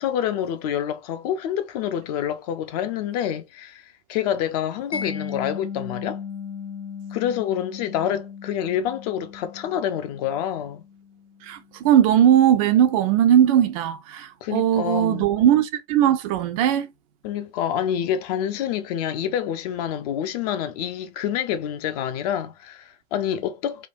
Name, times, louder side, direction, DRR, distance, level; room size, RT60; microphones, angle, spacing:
voice 1, 0.0-6.2 7.1-10.8 14.4-15.3 17.2-23.9, left 9 dB, 35° left, 0.5 m, -27 dB
Mallet percussion, 4.9-11.7, left 6 dB, 80° left, 0.8 m, -36 dB
voice 2, 11.8-16.9, right 10 dB, 30° right, 0.4 m, -19 dB
3.6 x 2.2 x 2.6 m
figure-of-eight pair, 95°, 34 cm